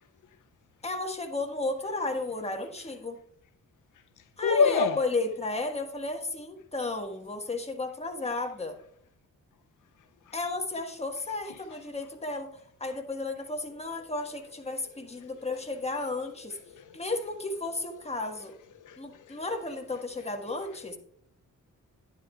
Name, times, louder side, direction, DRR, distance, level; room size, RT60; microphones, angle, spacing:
voice 1, 0.8-3.2 4.4-8.8 10.3-12.5 12.8-16.6 16.9-18.5 19.0-21.0, left 2 dB, 20° left, 1.4 m, -33 dB
voice 2, 4.4-5.0 11.7-11.8 16.7-17.0 18.8-19.4, left 6 dB, 70° left, 0.5 m, -26 dB
11.5 x 9.9 x 2.3 m
cardioid pair, 85°, 32 cm